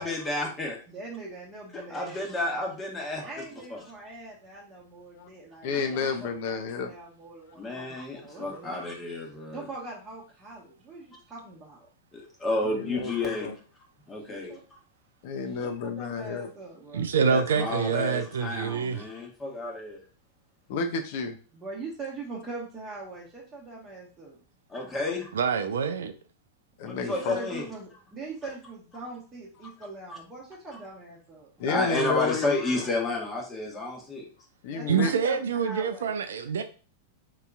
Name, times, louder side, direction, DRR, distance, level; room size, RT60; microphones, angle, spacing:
voice 1, 0.0-0.8 1.7-3.2 3.7-3.8 7.6-9.6 12.1-13.5 14.1-14.5 17.3-20.0 24.7-25.2 26.8-27.7 30.1-30.2 31.6-34.2, left 2 dB, 20° left, -1 dB, 1.1 m, -31 dB
voice 2, 0.9-2.6 3.2-8.9 9.5-11.9 14.3-14.6 15.6-17.1 21.5-24.4 26.9-31.7 34.6-36.1, right 3 dB, 20° right, -4 dB, 1.0 m, -42 dB
voice 3, 5.6-6.9 12.6-13.5 15.2-16.5 20.7-21.4 26.8-27.4 31.6-32.9 34.6-35.1, left 5 dB, 55° left, 7 dB, 0.6 m, -31 dB
voice 4, 16.9-19.0 25.3-26.1 34.9-36.6, right 6 dB, 75° right, 9 dB, 0.4 m, -26 dB
3.8 x 2.8 x 2.3 m, 0.37 s
hypercardioid pair, 100°, 0 cm